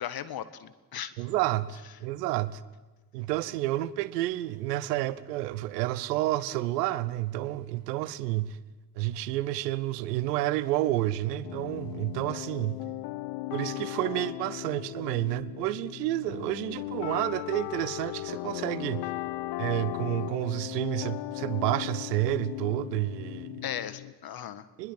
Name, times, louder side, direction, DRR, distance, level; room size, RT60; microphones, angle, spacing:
voice 1, 0.0-1.1 23.6-24.7, left 10 dB, 45° left, 1.7 m, -37 dB
voice 2, 1.2-2.6 3.1-8.6 9.0-12.8 13.5-19.1 19.6-23.6 24.8-24.9, right 15 dB, 75° right, 1.0 m, -30 dB
sound 1, 11.4-24.1, left 17 dB, 65° left, 1.4 m, -37 dB
25.5 x 21.5 x 7.7 m
figure-of-eight pair, 50°, 49 cm